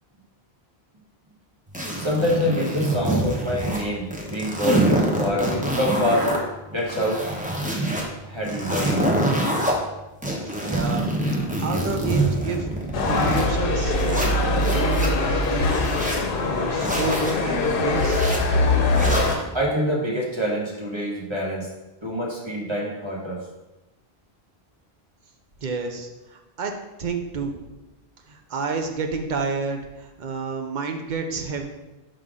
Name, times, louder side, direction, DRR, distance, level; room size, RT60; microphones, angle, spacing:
sound 1, 1.7-3.8 4.1-6.4 6.8-8.0 8.4-9.7 10.2-13.5 13.9-15.1 15.6-16.2 16.8-17.3 17.9-18.4 18.9-19.4, right 1 dB, 10° right, 0.8 m, -25 dB
voice 1, 2.0-6.3 6.7-7.2 8.2-9.1 19.2-21.7 22.0-23.4, equal, 25° right, -3 dB, 1.3 m, -26 dB
voice 2, 10.4-11.0 11.4-12.7 13.1-18.2 25.6-26.7 27.0-27.6 28.3-31.7, right 4 dB, 50° right, 4 dB, 0.8 m, -30 dB
sound 2, 12.9-19.4, left 2 dB, 60° left, 0.9 m, -22 dB
5.7 x 5.1 x 3.7 m, 1.0 s
omnidirectional pair, 1.1 m